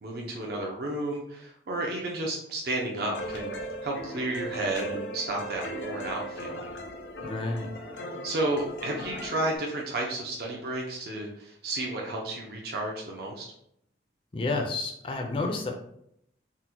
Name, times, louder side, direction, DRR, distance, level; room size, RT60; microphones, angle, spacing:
voice 1, 0.0-3.5 3.8-6.6 8.2-13.5, right 2 dB, 55° right, -1 dB, 0.5 m, -32 dB
sound 1, 3.1-9.6, equal, 85° left, 0.6 m, -38 dB
voice 2, 7.2-7.7 14.3-15.7, left 3 dB, 30° left, 3 dB, 0.4 m, -30 dB
3.7 x 2.1 x 2.8 m, 0.75 s
head